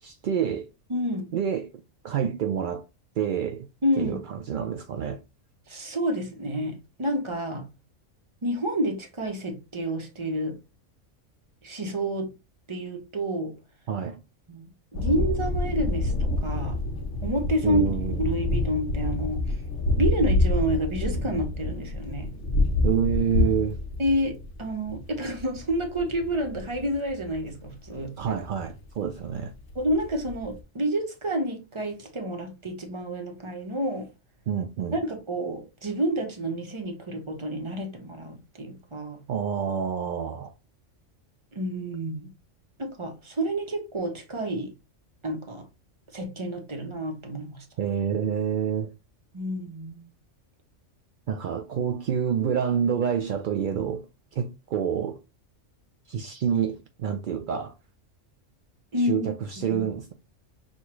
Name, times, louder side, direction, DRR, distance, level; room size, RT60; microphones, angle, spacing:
voice 1, 0.0-0.7 1.3-1.7 2.0-2.8 3.2-3.7 4.0-5.2 13.9-14.2 17.6-18.2 22.8-23.8 28.2-29.5 34.5-34.9 39.3-40.5 47.8-48.9 51.3-54.0 54.3-55.2 56.1-57.7 59.0-60.1, right 8 dB, 65° right, 0.5 m, -27 dB
voice 2, 0.9-1.3 3.8-4.2 5.7-7.7 8.4-10.6 11.6-12.3 12.7-13.6 14.5-14.7 14.9-16.8 17.2-19.6 20.0-22.3 24.0-28.1 29.7-34.1 34.9-39.2 41.5-42.3 42.8-44.7 45.2-45.7 46.1-47.7 49.3-50.1 58.9-59.3, right 1 dB, 25° right, 0.9 m, -29 dB
sound 1, 14.9-30.6, left 2 dB, 75° left, 1.2 m, -28 dB
6.3 x 2.4 x 3.0 m
omnidirectional pair, 1.3 m